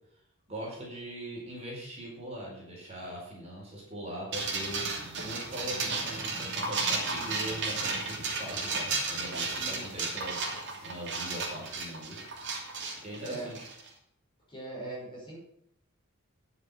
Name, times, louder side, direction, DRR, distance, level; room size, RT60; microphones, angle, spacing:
voice 1, 0.5-10.4 10.8-12.2 13.0-13.7, right 1 dB, 30° right, -4 dB, 4.5 m, -41 dB
sound 1, 4.3-13.9, right 3 dB, 55° right, 2.9 m, -33 dB
voice 2, 13.2-13.5 14.5-15.4, right 2 dB, 25° left, -5 dB, 5.7 m, -40 dB
10.5 x 7.3 x 7.1 m, 0.75 s
head